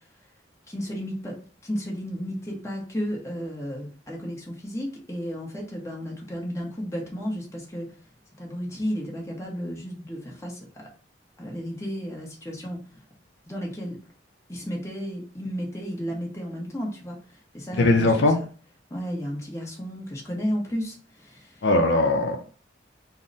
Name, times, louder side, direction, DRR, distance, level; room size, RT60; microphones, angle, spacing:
voice 1, 0.7-1.4 1.6-7.9 8.4-10.9 11.4-12.8 13.5-14.0 14.5-17.2 17.5-18.3 18.9-21.7, equal, 15° left, 0.9 m, -33 dB
voice 2, 17.7-18.4 21.6-22.4, left 2 dB, 65° left, 0.5 m, -20 dB
3.9 x 2.1 x 3.9 m
head